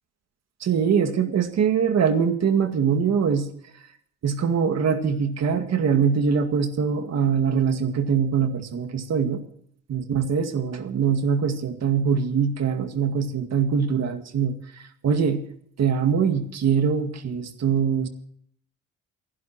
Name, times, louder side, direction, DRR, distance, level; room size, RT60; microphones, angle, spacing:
voice 1, 0.6-3.5 4.2-9.4 9.9-15.4 15.8-18.1, right 6 dB, 60° right, 6 dB, 2.1 m, -23 dB
28.5 x 11.0 x 3.0 m, 0.65 s
cardioid pair, 90°, 30 cm